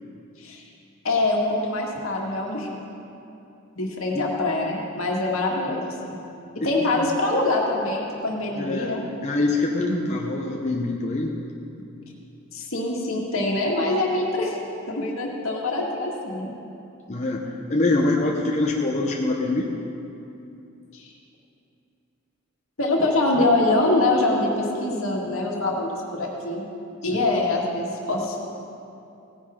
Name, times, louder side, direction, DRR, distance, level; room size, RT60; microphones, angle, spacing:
voice 1, 1.0-2.8 3.8-6.2 6.6-9.0 12.5-14.6 14.9-16.5 20.9-21.1 22.8-26.6 27.0-28.4, left 2 dB, 75° left, -1 dB, 1.9 m, -24 dB
voice 2, 6.8-7.1 8.6-9.0 9.2-11.4 17.1-19.7 27.1-27.2, left 2 dB, 35° left, -1 dB, 0.8 m, -24 dB
17.0 x 10.0 x 3.7 m, 2.8 s
head